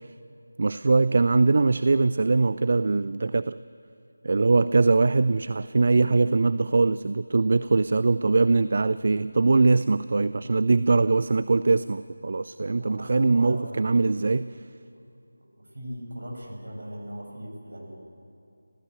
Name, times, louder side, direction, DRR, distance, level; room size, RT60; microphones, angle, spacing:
voice 1, 0.6-3.6 4.2-14.5, right 3 dB, 45° right, 15 dB, 0.4 m, -22 dB
voice 2, 12.6-14.4 14.9-15.0 15.4-18.0, equal, 60° right, 0 dB, 7.7 m, -40 dB
28.5 x 15.0 x 8.2 m, 2.5 s
figure-of-eight pair, 165°, 0 cm